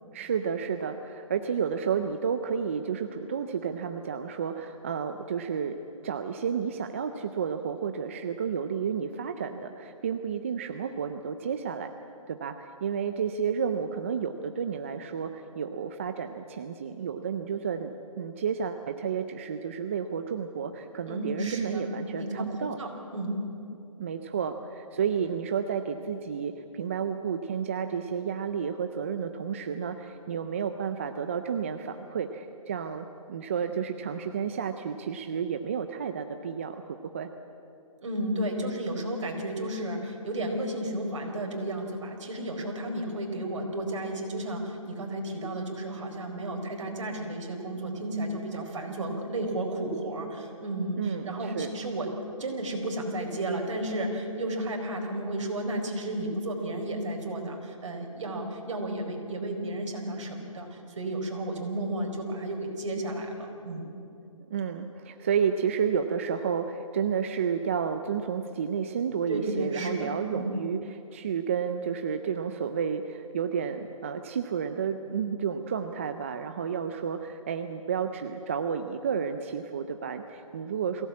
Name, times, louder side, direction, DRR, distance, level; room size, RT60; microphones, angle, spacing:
voice 1, 0.1-11.9 12.3-22.8 24.0-37.3 50.9-51.7 64.5-81.1, right 7 dB, 25° right, 8 dB, 0.5 m, -31 dB
voice 2, 21.1-21.9 22.2-23.4 38.0-52.1 52.4-63.9 69.3-70.5, right 1 dB, 60° right, 2 dB, 4.6 m, -33 dB
22.5 x 16.5 x 8.5 m, 2.8 s
hypercardioid pair, 170°, 18 cm